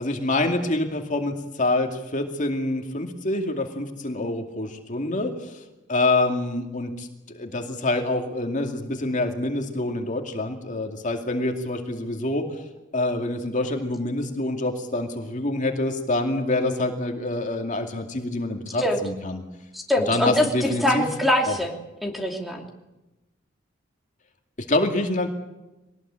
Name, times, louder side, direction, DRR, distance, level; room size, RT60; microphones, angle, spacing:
voice 1, 0.0-5.6 5.9-12.5 12.9-19.4 20.1-21.0 21.5-21.6 24.7-25.3, left 2 dB, 40° left, 4 dB, 2.4 m, -26 dB
voice 2, 19.7-21.7 22.0-22.7, left 1 dB, ahead, 2 dB, 2.8 m, -23 dB
23.0 x 19.0 x 8.9 m, 1.0 s
head